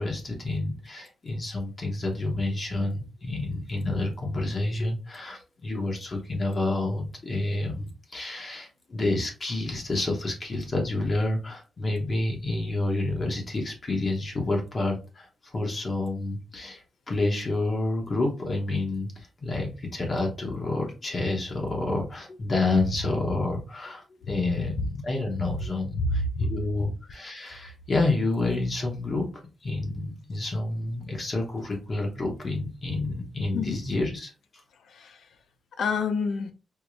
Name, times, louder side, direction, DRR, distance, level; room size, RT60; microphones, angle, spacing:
voice 1, 0.0-29.3 29.6-34.3, left 2 dB, 35° left, 0.8 m, -29 dB
voice 2, 24.3-24.9 25.4-25.6 25.9-26.9 33.5-33.8 34.9-35.2 35.8-36.5, left 3 dB, 75° left, 0.4 m, -29 dB
4.6 x 2.1 x 2.5 m
wide cardioid pair, 150°, 0 cm